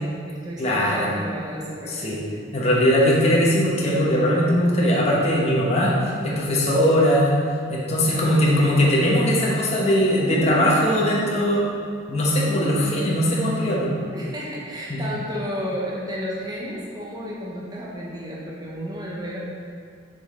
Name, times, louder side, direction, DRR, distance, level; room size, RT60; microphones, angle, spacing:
voice 1, 0.0-2.1 8.0-8.9 10.3-10.8 14.1-19.4, equal, 20° right, -5 dB, 1.0 m, -32 dB
voice 2, 0.6-1.1 1.9-2.2 2.5-5.9 6.2-7.4 7.7-11.7 12.1-13.9 14.9-15.0, equal, 35° left, -5 dB, 1.1 m, -20 dB
7.1 x 5.4 x 3.7 m, 2.2 s
head